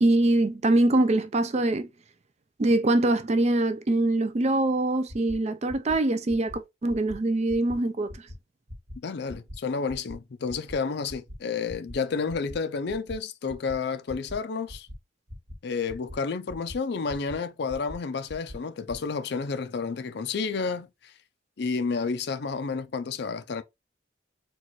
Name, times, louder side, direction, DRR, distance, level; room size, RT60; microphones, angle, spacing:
voice 1, 0.0-1.9 2.6-8.1, right 2 dB, 35° right, 0.4 m, -23 dB
sound 1, 5.1-5.4 5.7-6.0 6.3-6.6 6.9-7.2 7.5-7.8 8.1-8.3 8.7-9.0 9.3-9.5 9.9-10.2 10.5-10.8 11.1-11.4 11.7-12.0 12.3-12.6 12.9-13.2 13.5-13.8 14.1-14.4 14.7-15.0 15.3-15.5 15.9-16.2 16.5-16.8 17.1-17.4 17.7-18.0 18.3-18.6 18.9-19.0, left 1 dB, 65° right, 1.3 m, -41 dB
voice 2, 9.0-14.9 15.6-21.1 21.6-23.6, left 5 dB, 60° left, 0.4 m, -30 dB
4.0 x 2.3 x 3.0 m
head